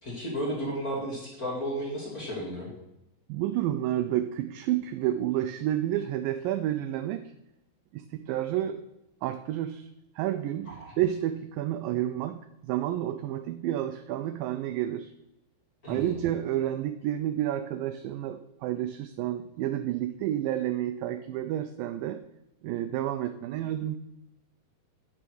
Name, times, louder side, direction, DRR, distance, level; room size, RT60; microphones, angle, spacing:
voice 1, 0.0-2.7 10.7-10.9 15.8-16.2, equal, 30° left, -5 dB, 2.0 m, -33 dB
voice 2, 3.3-7.3 7.9-8.8 9.2-9.9 10.2-15.1 15.9-22.2 22.6-24.0, right 12 dB, 90° right, 10 dB, 1.9 m, -30 dB
9.2 x 6.0 x 6.3 m, 0.92 s
omnidirectional pair, 4.5 m